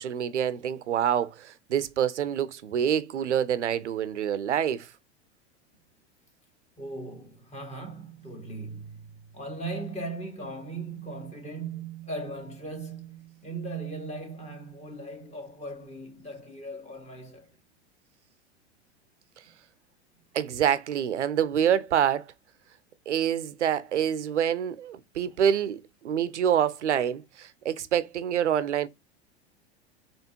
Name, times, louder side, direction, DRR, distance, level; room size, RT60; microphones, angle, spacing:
voice 1, 0.0-4.9 20.3-22.3 23.1-28.9, right 9 dB, 90° right, 0.6 m, -26 dB
voice 2, 6.8-17.5, right 3 dB, 20° left, 1.7 m, -38 dB
4.3 x 3.1 x 2.8 m
hypercardioid pair, 95°, 34 cm